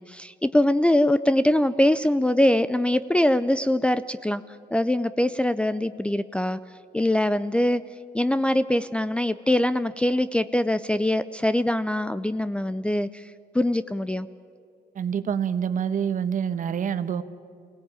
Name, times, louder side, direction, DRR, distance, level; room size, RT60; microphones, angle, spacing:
voice 1, 0.0-4.4 4.7-6.6 6.9-7.8 8.1-14.3, left 1 dB, 5° left, 11 dB, 0.5 m, -23 dB
voice 2, 14.9-17.2, right 8 dB, 50° right, 11 dB, 1.3 m, -26 dB
24.5 x 17.5 x 8.9 m, 2.5 s
cardioid pair, 125°, 17 cm